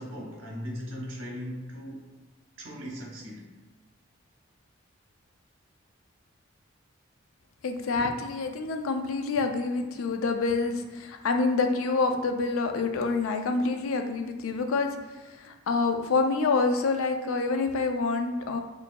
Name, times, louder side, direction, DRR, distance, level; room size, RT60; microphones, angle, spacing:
voice 1, 0.0-2.1 2.6-3.5, equal, 65° right, -1 dB, 0.9 m, -38 dB
voice 2, 7.6-18.6, left 3 dB, 85° left, 6 dB, 0.4 m, -27 dB
4.5 x 2.6 x 2.2 m, 1.2 s
head